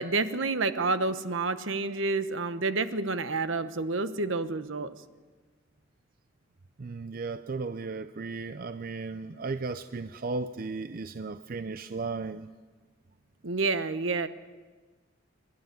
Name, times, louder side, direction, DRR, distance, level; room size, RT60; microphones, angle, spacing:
voice 1, 0.0-4.9 13.4-14.3, right 3 dB, 70° right, 12 dB, 1.0 m, -29 dB
voice 2, 6.8-12.5, right 4 dB, 45° right, 11 dB, 0.5 m, -35 dB
26.5 x 12.0 x 9.4 m, 1.4 s
head